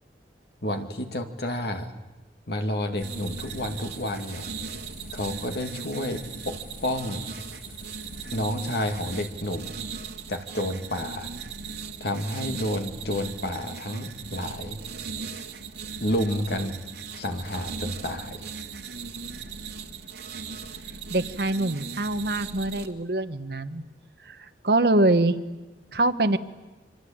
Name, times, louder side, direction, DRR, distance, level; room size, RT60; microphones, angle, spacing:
voice 1, 0.6-1.9 2.5-4.5 5.1-7.3 8.3-9.7 10.3-11.3 12.0-14.8 16.0-16.8 17.1-18.5, left 1 dB, 65° left, 5 dB, 2.4 m, -30 dB
sound 1, 3.0-9.3, left 2 dB, 50° left, 5.8 m, -48 dB
sound 2, 3.0-22.9, right 5 dB, 75° right, 2.4 m, -38 dB
voice 2, 21.1-23.8 24.3-24.4 24.6-25.4 25.9-26.4, right 2 dB, 60° right, 10 dB, 1.3 m, -24 dB
26.5 x 25.0 x 8.8 m, 1.2 s
head